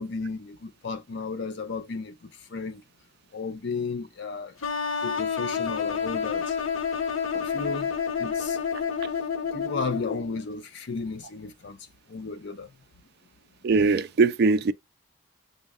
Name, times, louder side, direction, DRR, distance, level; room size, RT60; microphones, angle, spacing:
voice 1, 0.0-2.8 3.3-4.6 5.0-6.6 7.4-8.6 9.5-12.7, left 4 dB, 55° left, 0.4 m, -34 dB
sound 1, 4.6-10.4, left 6 dB, 70° left, 0.9 m, -29 dB
voice 2, 13.6-14.7, right 4 dB, 50° right, 0.3 m, -21 dB
6.1 x 2.2 x 3.4 m
head